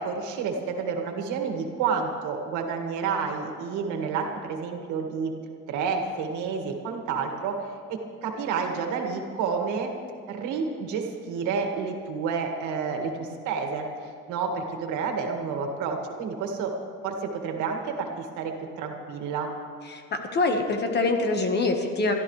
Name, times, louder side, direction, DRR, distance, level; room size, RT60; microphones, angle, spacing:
voice 1, 0.0-5.3 5.7-9.9 10.3-16.7 17.0-19.5, right 5 dB, 80° right, 3 dB, 2.0 m, -30 dB
voice 2, 19.9-22.1, left 3 dB, 35° left, 4 dB, 1.4 m, -25 dB
22.5 x 13.0 x 3.3 m, 2.2 s
cardioid pair, 160°, 29 cm